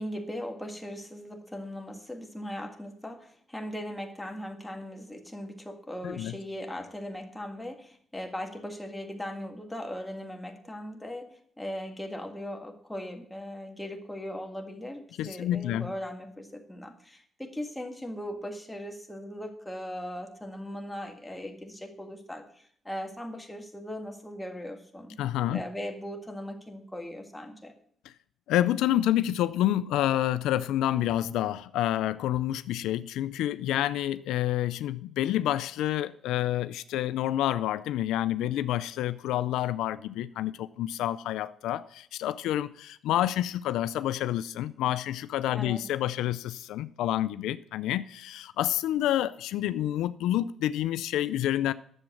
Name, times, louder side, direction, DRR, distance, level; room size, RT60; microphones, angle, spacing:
voice 1, 0.0-25.2 25.5-27.7 45.6-45.8, equal, 10° left, 1.8 m, -39 dB
voice 2, 6.0-6.4 15.2-15.9 25.2-25.6 28.5-51.7, left 13 dB, 90° left, 0.3 m, -28 dB
10.5 x 7.3 x 6.4 m
cardioid pair, 90°, 0 cm